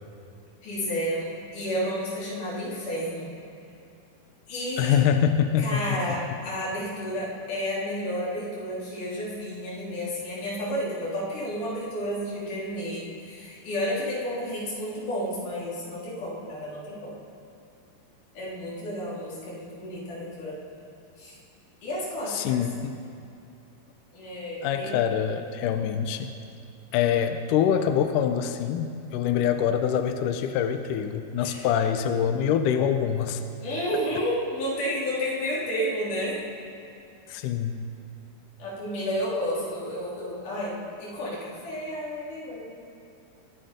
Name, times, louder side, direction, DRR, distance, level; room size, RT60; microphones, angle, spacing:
voice 1, 0.6-3.3 4.5-5.0 5.6-17.2 18.3-20.6 21.2-21.4 21.8-22.6 24.1-25.0 31.4-31.6 33.6-36.4 38.6-42.8, equal, 55° left, -6 dB, 5.0 m, -31 dB
voice 2, 4.8-6.0 22.3-23.0 24.6-26.3 26.9-33.4 37.3-37.8, left 8 dB, 85° left, 8 dB, 1.9 m, -25 dB
22.5 x 11.5 x 5.2 m, 2.6 s
omnidirectional pair, 4.5 m